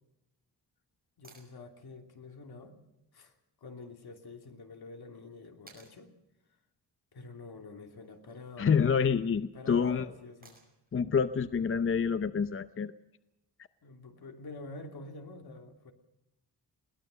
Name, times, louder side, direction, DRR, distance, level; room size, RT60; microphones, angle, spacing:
voice 1, 1.2-2.8 3.1-6.1 7.1-8.8 9.5-10.6 13.8-15.9, left 3 dB, 60° left, 4 dB, 3.0 m, -47 dB
sound 1, 1.2-1.5 3.8-3.9 5.7-6.0 8.0-8.4 10.4-10.9 13.0-13.1, right 3 dB, 20° right, 5.9 m, -57 dB
voice 2, 8.6-10.1 10.9-12.9, left 6 dB, 30° left, 12 dB, 0.7 m, -27 dB
22.0 x 18.5 x 6.7 m, 0.91 s
wide cardioid pair, 125°, 42 cm